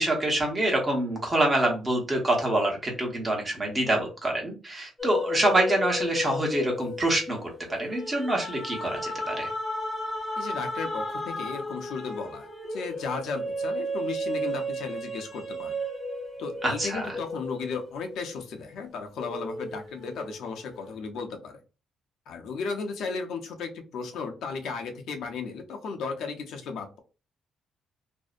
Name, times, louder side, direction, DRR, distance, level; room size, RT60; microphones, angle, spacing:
voice 1, 0.0-9.5 16.6-17.2, right 1 dB, 20° right, 0 dB, 0.9 m, -26 dB
sound 1, 5.0-18.7 19.2-20.8, equal, 20° left, 0.7 m, -34 dB
voice 2, 10.4-15.7 16.4-21.6 22.3-27.0, left 5 dB, 75° left, 4 dB, 0.6 m, -35 dB
2.6 x 2.1 x 2.4 m, 0.32 s
cardioid pair, 125°, 0 cm